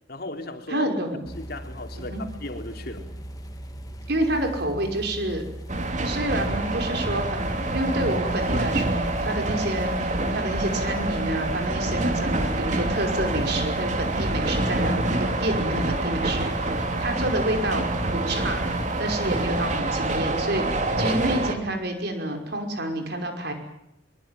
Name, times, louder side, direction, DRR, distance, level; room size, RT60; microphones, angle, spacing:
voice 1, 0.1-0.9 1.4-3.1, left 2 dB, 55° left, 5 dB, 3.3 m, -36 dB
voice 2, 0.7-1.2 2.0-2.2 4.1-5.4 6.0-17.9 18.1-18.7 19.0-23.5, right 1 dB, 55° right, 5 dB, 5.5 m, -29 dB
sound 1, 1.2-19.8, right 1 dB, 20° left, 2.6 m, -38 dB
sound 2, 5.7-21.5, right 2 dB, 40° right, 3.1 m, -26 dB
23.0 x 23.0 x 9.3 m, 0.82 s
head